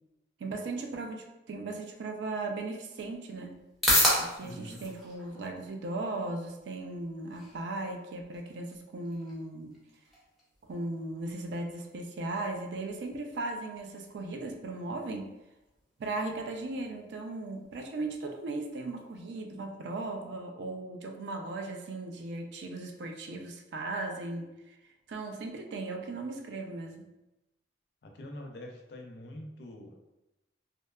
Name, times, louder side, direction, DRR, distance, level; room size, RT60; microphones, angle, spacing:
voice 1, 0.4-3.5 4.2-9.8 10.6-15.3 16.0-24.7 25.1-27.0, right 2 dB, 70° right, 4 dB, 0.3 m, -37 dB
sound 1, 2.4-19.3, left 1 dB, ahead, 0.5 m, -37 dB
voice 2, 4.4-4.8 28.0-30.0, left 1 dB, 60° left, 2 dB, 0.4 m, -45 dB
2.7 x 2.2 x 2.2 m, 0.97 s
head